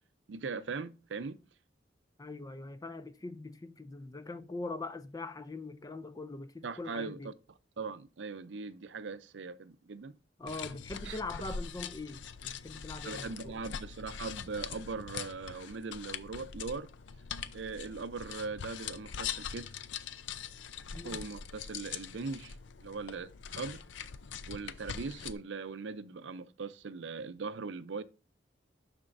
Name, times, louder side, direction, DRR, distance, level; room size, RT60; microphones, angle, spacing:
voice 1, 0.3-1.4 6.6-7.3 7.8-10.2 11.1-11.2 13.0-16.9 17.5-19.7 21.0-22.6 22.8-23.3 23.6-23.8 24.5-28.0, right 4 dB, 75° right, 0.5 m, -40 dB
voice 2, 2.2-7.3 10.4-13.6 20.9-21.2, left 2 dB, 20° left, 0.5 m, -42 dB
sound 1, 10.5-25.3, left 7 dB, 80° left, 0.5 m, -43 dB
12.0 x 4.3 x 2.6 m
head